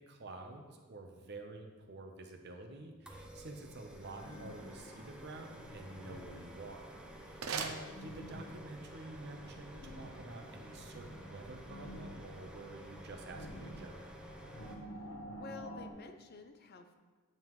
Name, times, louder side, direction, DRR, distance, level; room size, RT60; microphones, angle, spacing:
voice 1, 0.1-6.9 7.2-14.1, right 2 dB, 55° right, 4 dB, 0.8 m, -49 dB
sound 1, 3.1-14.7, right 1 dB, 5° right, 0.6 m, -52 dB
sound 2, 4.0-15.9, equal, 85° left, 1.0 m, -51 dB
sound 3, 7.2-8.6, right 5 dB, 85° right, 0.6 m, -43 dB
voice 2, 14.8-16.9, left 4 dB, 50° left, 7 dB, 0.5 m, -52 dB
9.1 x 5.5 x 3.1 m, 1.4 s
head